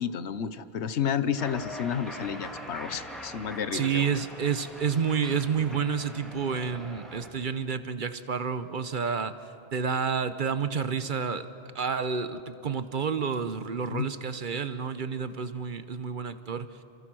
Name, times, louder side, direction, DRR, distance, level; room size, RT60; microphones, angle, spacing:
voice 1, 0.0-4.1 13.9-14.1, left 8 dB, 85° left, 13 dB, 1.2 m, -31 dB
Cheering, 1.4-7.3, equal, ahead, 3.2 m, -42 dB
voice 2, 3.7-9.4 9.7-11.5 11.7-16.7, right 6 dB, 50° right, 12 dB, 1.0 m, -29 dB
28.0 x 26.5 x 6.2 m, 2.8 s
omnidirectional pair, 1.1 m